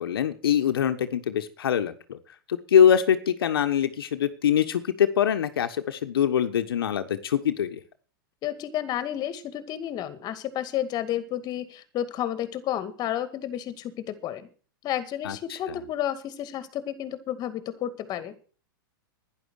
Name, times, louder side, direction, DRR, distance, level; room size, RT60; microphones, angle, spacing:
voice 1, 0.0-2.2 2.5-7.8 15.2-15.8, left 9 dB, 80° left, 9 dB, 1.3 m, -23 dB
voice 2, 8.4-14.5 14.8-18.3, left 11 dB, 35° left, 13 dB, 2.1 m, -31 dB
11.5 x 10.5 x 6.5 m, 0.38 s
hypercardioid pair, 120°, 12 cm